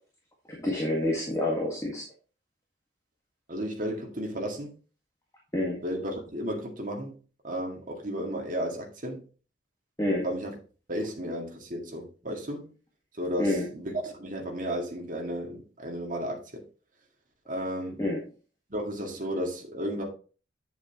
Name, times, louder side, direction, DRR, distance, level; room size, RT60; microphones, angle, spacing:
voice 1, 0.5-2.0 5.5-5.8 10.0-10.2 13.4-13.7 18.0-18.2, left 1 dB, 15° left, 1.7 m, -28 dB
voice 2, 3.5-4.8 5.8-7.2 7.4-9.2 10.2-10.6 10.9-12.7 13.2-16.6 17.5-18.0 18.7-20.0, equal, 45° right, 2.2 m, -33 dB
8.7 x 7.0 x 3.0 m
head